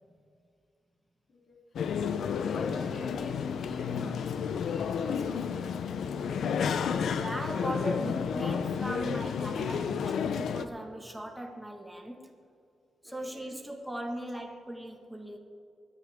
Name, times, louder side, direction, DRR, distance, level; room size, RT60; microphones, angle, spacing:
voice 1, 1.3-6.2 13.0-13.6, left 2 dB, 55° left, -3 dB, 3.1 m, -48 dB
sound 1, 1.8-10.7, left 7 dB, 85° left, 0.6 m, -31 dB
voice 2, 7.2-12.2 13.0-15.4, right 1 dB, 5° right, 1 dB, 1.6 m, -38 dB
24.5 x 10.5 x 3.6 m, 2.4 s
cardioid pair, 100°, 0 cm